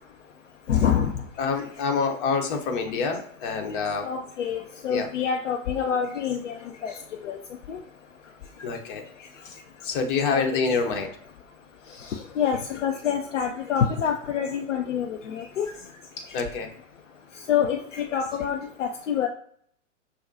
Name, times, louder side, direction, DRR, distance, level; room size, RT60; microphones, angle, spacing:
voice 1, 0.7-1.1 4.0-6.9 7.2-7.4 7.7-7.8 10.3-10.4 12.4-15.7 17.5-19.3, left 8 dB, 70° left, 3 dB, 0.6 m, -26 dB
voice 2, 1.4-4.1 4.9-5.1 8.6-9.0 9.4-9.6 9.8-11.1 16.3-16.7, left 5 dB, 40° left, 4 dB, 1.0 m, -26 dB
6.0 x 2.2 x 2.7 m, 0.63 s
figure-of-eight pair, 95°, 38 cm